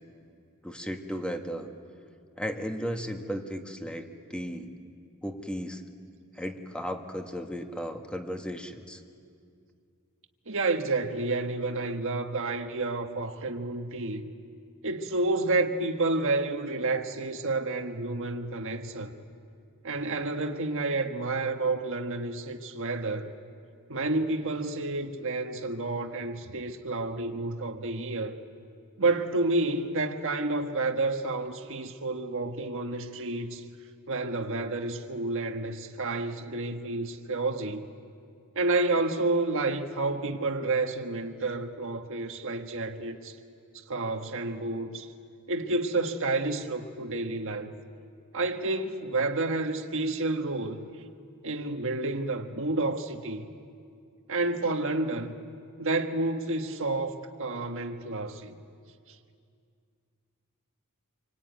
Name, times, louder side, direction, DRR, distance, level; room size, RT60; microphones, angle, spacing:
voice 1, 0.6-1.7 2.4-4.7 5.2-5.8 6.3-9.0, equal, 5° left, 1.7 m, -35 dB
voice 2, 10.5-14.3 14.8-19.1 19.8-23.3 23.9-28.4 29.0-33.6 34.1-37.8 38.5-43.3 43.9-45.1 45.5-47.7 48.3-50.9 51.4-53.5 54.3-55.4 55.8-58.5, right 2 dB, 65° right, 1.5 m, -30 dB
26.5 x 24.5 x 9.3 m
head